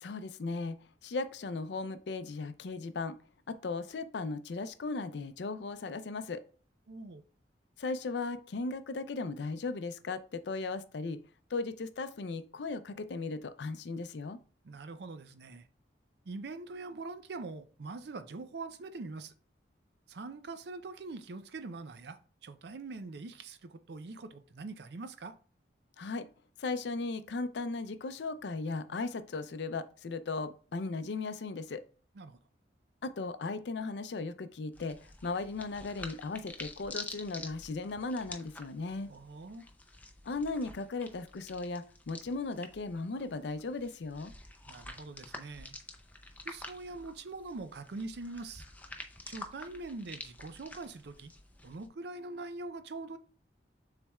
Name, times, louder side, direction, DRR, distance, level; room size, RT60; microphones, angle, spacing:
voice 1, 0.0-0.8 1.0-3.2 3.5-6.4 7.8-11.2 11.5-14.4 26.0-26.3 26.6-31.8 33.0-35.0 35.2-39.1 40.3-44.3, left 3 dB, 75° left, 0.5 m, -37 dB
voice 2, 6.9-7.2 14.6-15.7 16.3-19.3 20.1-25.3 32.1-32.4 39.1-39.6 44.7-45.8 46.4-48.6 49.3-51.3 51.6-53.2, right 3 dB, 65° right, 0.5 m, -43 dB
sound 1, 34.7-51.9, left 2 dB, 10° left, 0.5 m, -49 dB
7.1 x 3.3 x 2.3 m
head